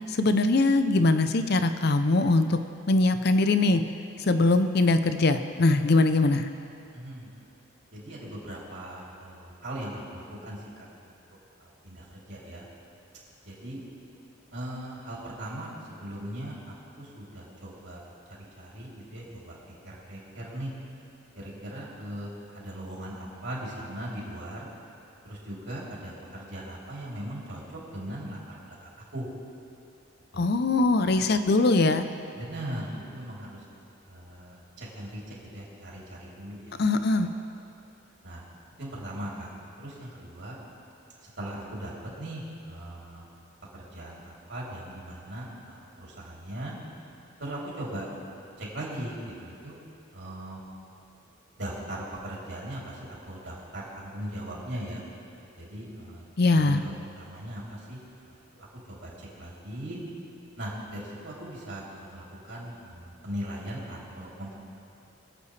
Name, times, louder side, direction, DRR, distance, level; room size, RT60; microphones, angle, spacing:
voice 1, 0.2-2.6 2.9-3.8 4.3-6.5 30.4-32.1 36.8-37.3 56.4-56.8, left 2 dB, 50° left, 9 dB, 0.6 m, -22 dB
voice 2, 6.9-7.3 7.9-12.7 13.4-13.8 14.5-15.7 16.0-18.0 18.3-19.6 19.8-20.7 21.3-24.7 25.2-29.3 30.3-30.5 32.3-33.6 34.1-36.7 37.1-37.3 38.2-38.4 38.8-39.5 39.8-40.6 41.2-43.3 43.7-46.7 47.4-48.1 48.6-49.7 50.1-50.6 51.6-55.0 55.6-56.3 56.5-58.0 58.2-60.0 60.6-64.5, right 1 dB, 60° right, -5 dB, 3.3 m, -39 dB
24.0 x 8.4 x 3.3 m, 2.7 s
head